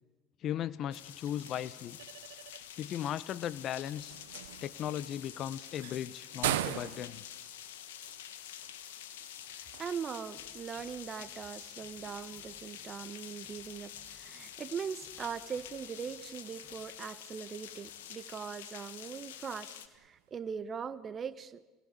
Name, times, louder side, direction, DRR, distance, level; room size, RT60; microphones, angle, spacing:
voice 1, 0.4-2.0 2.8-4.2 4.6-7.2, left 10 dB, 55° left, 18 dB, 0.9 m, -37 dB
sound 1, 0.9-19.9, left 10 dB, 85° left, 1.6 m, -48 dB
sound 2, 1.0-20.5, right 15 dB, 85° right, 0.8 m, -45 dB
voice 2, 9.8-19.8 20.0-21.6, right 7 dB, 40° right, 14 dB, 1.5 m, -41 dB
sound 3, 10.4-16.8, right 1 dB, 10° left, 7.9 m, -67 dB
27.0 x 19.0 x 8.6 m, 1.2 s
hypercardioid pair, 80°, 0 cm